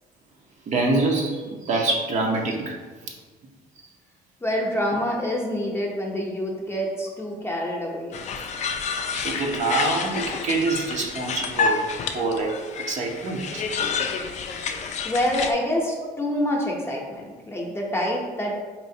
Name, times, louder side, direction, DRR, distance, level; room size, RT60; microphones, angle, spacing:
voice 1, 0.7-3.1 9.1-11.8 12.1-12.6 12.9-13.7, right 2 dB, 45° right, 0 dB, 0.6 m, -25 dB
voice 2, 4.4-8.2 15.0-18.6, left 1 dB, 15° left, -1 dB, 0.7 m, -26 dB
sound 1, 8.1-15.5, left 5 dB, 45° left, 0.4 m, -29 dB
4.3 x 3.0 x 2.7 m, 1.4 s
cardioid pair, 110°, 17 cm